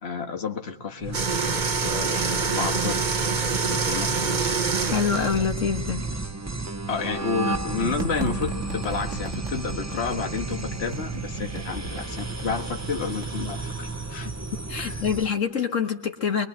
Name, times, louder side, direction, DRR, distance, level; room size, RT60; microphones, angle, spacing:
voice 1, 0.0-1.2 1.8-3.2 3.6-4.5 6.9-14.3 14.8-15.0, left 5 dB, 55° left, 4 dB, 1.9 m, -31 dB
sound 1, 1.0-15.3, right 3 dB, 15° right, 0.8 m, -32 dB
sound 2, 1.1-5.5, right 5 dB, 40° right, 1.2 m, -26 dB
voice 2, 4.8-6.1 14.7-16.5, left 6 dB, 75° left, 5 dB, 1.8 m, -25 dB
sound 3, 7.8-13.3, right 3 dB, 70° right, 2.2 m, -36 dB
24.0 x 23.0 x 8.0 m, 0.86 s
omnidirectional pair, 1.3 m